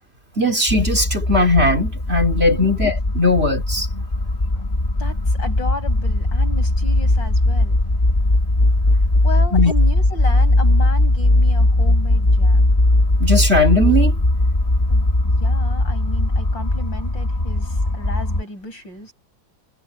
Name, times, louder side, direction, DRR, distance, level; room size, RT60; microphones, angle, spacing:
voice 1, 0.4-3.9 9.5-9.7 13.2-14.1, left 1 dB, 35° right, 3.1 m, -18 dB
sound 1, 0.7-18.4, left 2 dB, 20° left, 1.7 m, -18 dB
voice 2, 5.0-7.8 9.2-12.7 14.9-19.1, left 2 dB, 75° left, 7.1 m, -33 dB
omnidirectional pair, 2.0 m